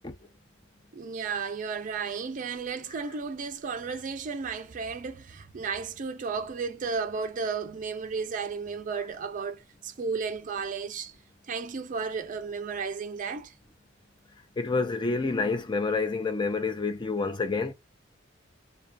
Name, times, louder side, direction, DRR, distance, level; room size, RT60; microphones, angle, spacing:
voice 1, 0.9-11.1 11.5-13.5, right 5 dB, 40° right, 0.4 m, -33 dB
voice 2, 14.6-17.7, left 3 dB, 25° left, 0.5 m, -28 dB
2.3 x 2.2 x 2.5 m
head